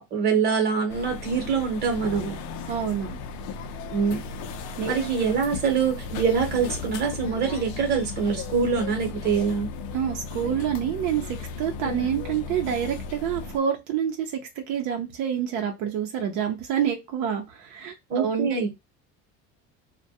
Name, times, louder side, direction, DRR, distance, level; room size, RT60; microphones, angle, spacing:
voice 1, 0.1-2.4 3.9-4.2 4.8-9.7 11.8-12.1 18.1-18.7, right 6 dB, 35° right, 3 dB, 0.9 m, -24 dB
sound 1, 0.9-13.6, left 4 dB, 75° left, 0.5 m, -36 dB
voice 2, 2.7-3.2 4.8-4.9 9.9-18.6, right 9 dB, 75° right, 3 dB, 0.6 m, -27 dB
2.2 x 2.2 x 2.7 m, 0.21 s
cardioid pair, 145°, 29 cm